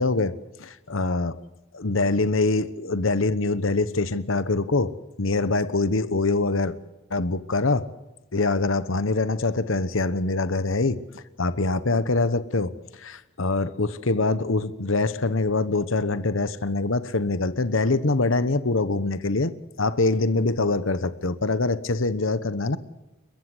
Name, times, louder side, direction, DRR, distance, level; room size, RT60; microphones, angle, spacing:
voice 1, 0.0-1.4 1.7-6.7 7.1-7.9 8.3-22.8, left 3 dB, 65° left, 1.1 m, -24 dB
30.0 x 14.0 x 8.3 m
head